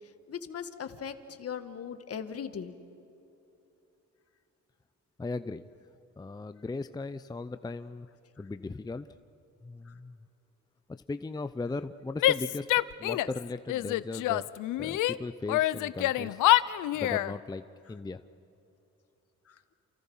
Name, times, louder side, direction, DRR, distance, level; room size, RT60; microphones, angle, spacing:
voice 1, 0.3-2.7, left 7 dB, 50° left, 9 dB, 1.6 m, -38 dB
voice 2, 5.2-5.7 6.2-8.1 8.4-9.1 9.6-10.3 11.1-12.7 13.0-14.5 14.8-16.4 16.9-18.2, left 3 dB, 15° left, 11 dB, 0.6 m, -37 dB
Female speech woman speaking / Yell, 12.2-13.4 13.7-15.2 15.5-17.3, left 15 dB, 85° left, 0.6 m, -26 dB
28.5 x 28.5 x 5.6 m, 2.8 s
cardioid pair, 90°, 30 cm